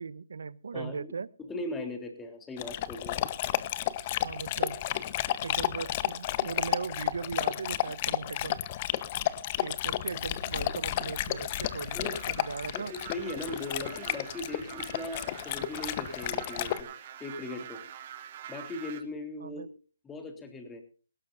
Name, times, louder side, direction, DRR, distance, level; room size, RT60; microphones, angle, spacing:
voice 1, 0.0-1.3 4.2-4.8 5.4-8.6 9.6-12.9 19.4-19.7, right 5 dB, 70° right, 18 dB, 1.0 m, -38 dB
voice 2, 0.7-1.1 1.4-3.3 11.9-12.2 12.7-16.9 17.2-17.8 18.5-19.7 20.0-20.8, left 2 dB, 10° left, 5 dB, 3.5 m, -39 dB
Dog, 2.6-16.8, left 13 dB, 30° left, 1.0 m, -32 dB
sound 1, 10.7-19.0, right 9 dB, 35° right, 2.6 m, -46 dB
19.0 x 17.5 x 2.6 m, 0.36 s
hypercardioid pair, 155°, 0 cm